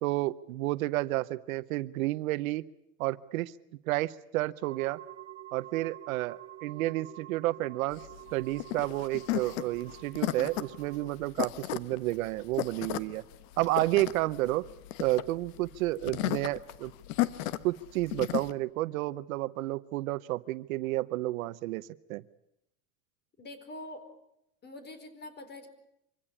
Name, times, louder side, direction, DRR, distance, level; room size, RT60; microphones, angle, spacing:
voice 1, 0.0-2.6 3.0-3.5 3.9-5.0 5.5-8.0 8.3-13.2 13.6-14.7 15.0-16.9 17.6-22.2, right 18 dB, 75° right, 16 dB, 0.9 m, -31 dB
sound 1, 4.6-11.2, right 13 dB, 35° right, 2.1 m, -48 dB
sound 2, 7.9-18.5, left 15 dB, 65° left, 1.4 m, -34 dB
voice 2, 23.4-24.1 24.6-25.7, left 2 dB, 25° left, 9 dB, 4.4 m, -44 dB
25.0 x 16.5 x 9.8 m, 0.81 s
supercardioid pair, 135°, 42 cm